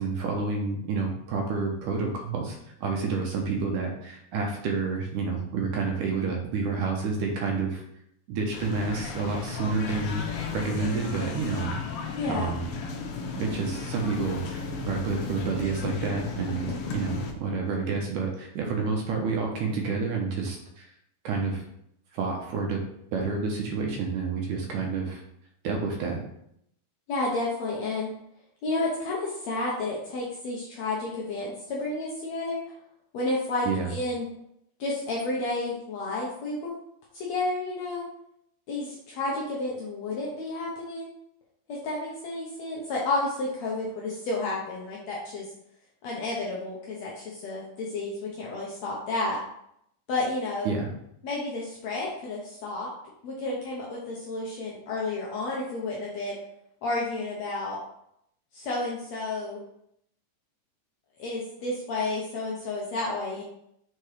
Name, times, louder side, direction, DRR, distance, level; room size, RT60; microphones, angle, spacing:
voice 1, 0.0-7.8 8.3-10.2 10.5-12.7 13.4-20.9 21.2-21.6 22.1-22.8 23.1-25.2 25.6-26.2 33.6-33.9 50.7-50.9, right 4 dB, 75° right, 1 dB, 2.3 m, -29 dB
sound 1, 8.5-17.3, left 4 dB, 85° left, 2.5 m, -34 dB
voice 2, 12.2-12.5 27.1-28.1 28.6-32.6 33.1-34.3 34.8-36.7 37.1-38.0 38.7-41.1 41.7-45.4 46.0-49.4 50.1-50.7 51.2-52.9 53.2-56.4 56.8-57.8 58.5-59.6 61.2-63.4, left 2 dB, 70° left, -4 dB, 1.7 m, -31 dB
6.6 x 4.4 x 3.3 m, 0.74 s
omnidirectional pair, 4.0 m